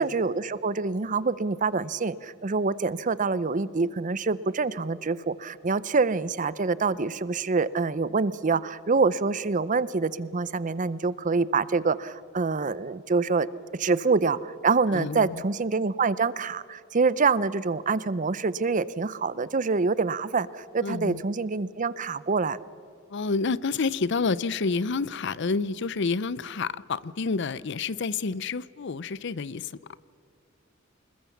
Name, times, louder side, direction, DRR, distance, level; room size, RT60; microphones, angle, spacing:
voice 1, 0.0-13.5 13.8-20.5 20.7-22.6, right 4 dB, 40° right, 18 dB, 0.6 m, -26 dB
voice 2, 14.9-15.4 20.8-21.2 23.1-29.8, left 4 dB, 60° left, 19 dB, 0.6 m, -29 dB
26.0 x 21.0 x 7.2 m, 2.4 s
head